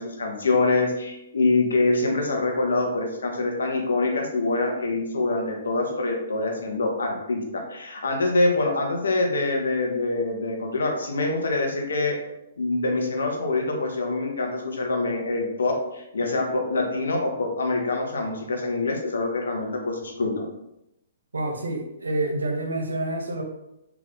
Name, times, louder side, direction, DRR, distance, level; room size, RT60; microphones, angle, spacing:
voice 1, 0.0-12.2 12.6-20.4, left 2 dB, 80° left, 2 dB, 0.8 m, -25 dB
voice 2, 21.3-23.4, right 2 dB, 90° right, 2 dB, 0.8 m, -28 dB
3.5 x 2.4 x 3.5 m, 0.86 s
hypercardioid pair, 135°, 0 cm